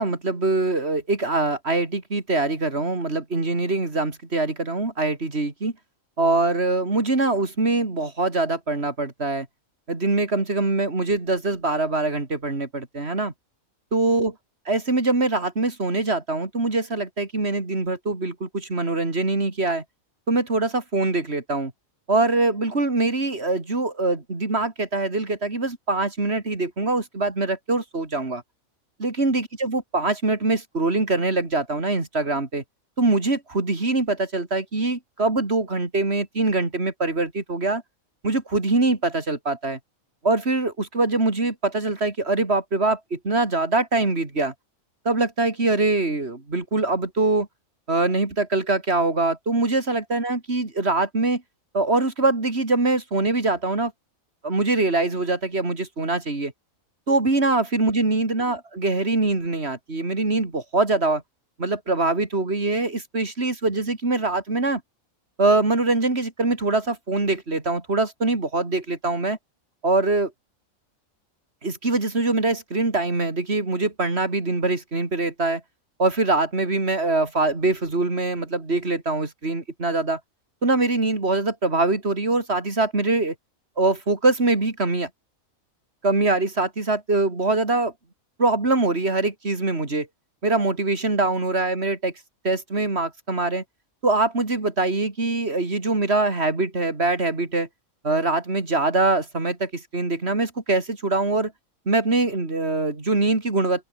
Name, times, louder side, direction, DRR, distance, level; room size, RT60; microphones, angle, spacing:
voice 1, 0.0-5.7 6.2-9.5 9.9-13.3 13.9-14.3 14.7-19.8 20.3-21.7 22.1-28.4 29.0-32.6 33.0-37.8 38.2-39.8 40.2-44.5 45.1-47.5 47.9-51.4 51.7-53.9 54.4-56.5 57.1-61.2 61.6-64.8 65.4-69.4 69.8-70.3 71.6-75.6 76.0-80.2 80.6-83.3 83.8-85.1 86.0-87.9 88.4-90.1 90.4-92.1 92.4-93.6 94.0-97.7 98.0-101.5 101.9-103.9, right 2 dB, 50° right, 3.6 m, -23 dB
open air
omnidirectional pair, 1.4 m